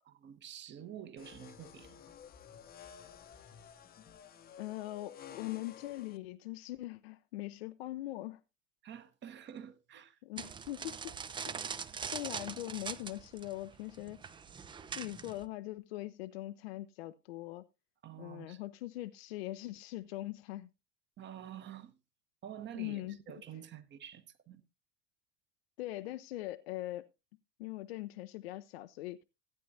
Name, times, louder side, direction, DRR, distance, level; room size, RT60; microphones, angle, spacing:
voice 1, 0.1-2.2 8.8-10.2 18.0-18.6 21.2-22.0 22.4-24.6, right 10 dB, 30° right, 1.1 m, -48 dB
sound 1, 1.2-6.2, left 8 dB, 25° left, 0.8 m, -53 dB
voice 2, 4.6-8.4 10.2-11.0 12.1-14.3 14.9-17.6 18.2-20.7 22.7-23.2 25.8-27.1 27.6-29.3, left 16 dB, 55° left, 0.6 m, -41 dB
sound 2, 10.4-15.4, right 6 dB, 15° right, 0.5 m, -42 dB
16.0 x 9.4 x 2.7 m
figure-of-eight pair, 80°, 37 cm